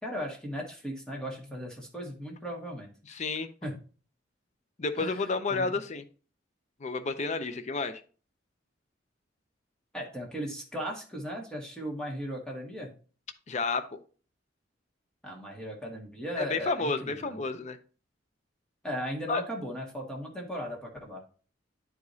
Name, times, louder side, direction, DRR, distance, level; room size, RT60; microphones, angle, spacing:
voice 1, 0.0-2.9 3.6-3.8 5.0-5.2 5.5-5.7 9.9-12.9 15.2-17.4 18.8-21.2, equal, 5° left, -2 dB, 1.8 m, -37 dB
voice 2, 3.1-3.5 4.8-6.0 6.8-8.0 13.5-14.0 16.4-17.8 19.3-19.4, left 3 dB, 40° left, 10 dB, 0.5 m, -31 dB
10.5 x 4.8 x 2.7 m, 0.38 s
head